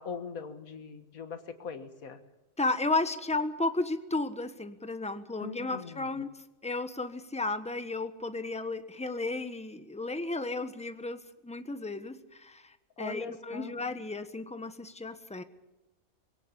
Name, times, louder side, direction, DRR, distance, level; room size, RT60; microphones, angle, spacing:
voice 1, 0.0-2.2 5.4-6.1 13.0-13.7, left 5 dB, 85° left, 8 dB, 2.0 m, -41 dB
voice 2, 2.6-6.3 6.6-15.4, left 2 dB, 5° left, 10 dB, 1.2 m, -33 dB
23.0 x 17.5 x 6.9 m, 1.0 s
omnidirectional pair, 1.4 m